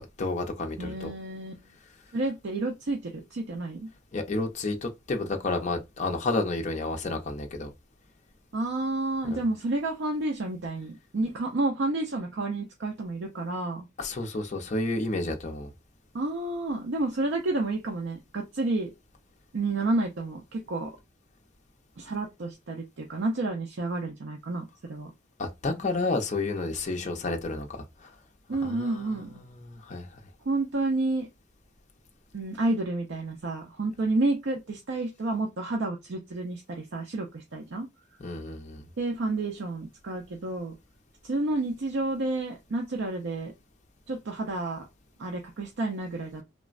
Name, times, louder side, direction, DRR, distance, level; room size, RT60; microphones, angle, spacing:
voice 1, 0.0-1.1 4.1-7.7 9.3-9.4 14.0-15.7 25.4-28.1 28.6-30.1 38.2-38.8, left 2 dB, 35° left, 0.5 m, -31 dB
voice 2, 0.8-1.5 2.1-3.9 8.5-13.9 16.1-18.9 19.5-20.9 22.0-25.1 28.5-29.3 30.4-31.3 32.3-37.9 39.0-40.7 41.2-43.5 44.1-44.9 45.2-46.4, right 2 dB, 70° right, 0.5 m, -30 dB
3.2 x 2.0 x 2.4 m
head